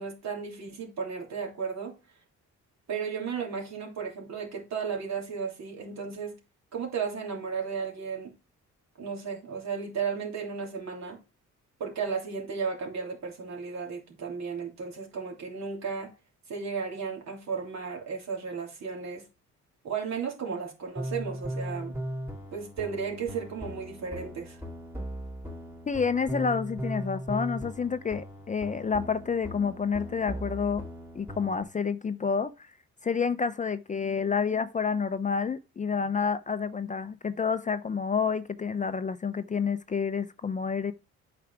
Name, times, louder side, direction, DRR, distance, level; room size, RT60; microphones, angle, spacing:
voice 1, 0.0-1.9 2.9-6.3 6.7-8.3 9.0-11.2 11.8-16.1 16.5-19.2 19.8-21.9 22.5-24.6, right 6 dB, 65° right, 3.2 m, -34 dB
sound 1, 21.0-31.6, equal, 5° right, 2.5 m, -38 dB
voice 2, 25.9-30.8 31.2-32.7 33.0-40.9, left 6 dB, 25° left, 0.5 m, -29 dB
8.5 x 4.9 x 4.7 m
cardioid pair, 90°, 30 cm